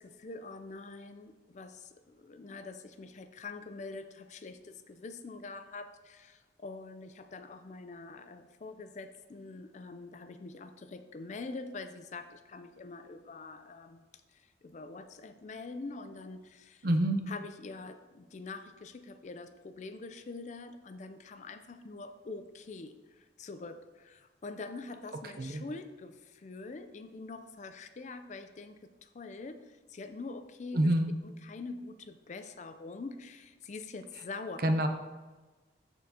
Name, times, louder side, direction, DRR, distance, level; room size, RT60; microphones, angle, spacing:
voice 1, 0.0-14.0 14.3-16.9 17.3-30.9 31.2-34.7, left 3 dB, 40° left, 9 dB, 0.4 m, -45 dB
voice 2, 16.8-17.2 25.4-25.6 30.7-31.1 34.6-34.9, right 1 dB, 55° right, 7 dB, 0.6 m, -26 dB
12.5 x 4.5 x 2.8 m, 1.2 s
head